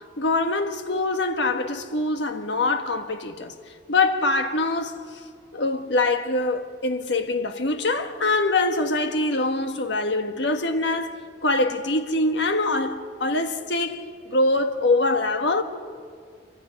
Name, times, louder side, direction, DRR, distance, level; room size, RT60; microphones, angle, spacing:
voice 1, 0.0-3.5 3.9-5.0 5.5-15.6, left 2 dB, 70° left, 1.6 m, -24 dB
27.0 x 24.5 x 6.6 m
head